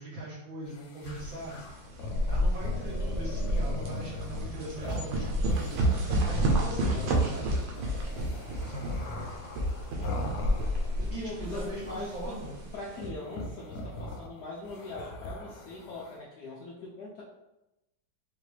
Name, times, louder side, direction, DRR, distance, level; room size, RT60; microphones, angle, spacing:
voice 1, 0.0-1.6 2.3-7.6 8.7-9.0 10.9-12.6, right 2 dB, 55° right, -6 dB, 1.1 m, -41 dB
sound 1, 0.7-11.2 11.4-12.4 12.9-16.2, left 2 dB, 85° left, 1.5 m, -40 dB
sound 2, 1.0-13.1, right 1 dB, 80° right, 1.5 m, -30 dB
voice 2, 9.1-9.4 11.0-12.4 12.7-17.2, left 2 dB, 70° left, -4 dB, 1.0 m, -41 dB
4.6 x 2.6 x 3.2 m, 0.94 s
omnidirectional pair, 2.3 m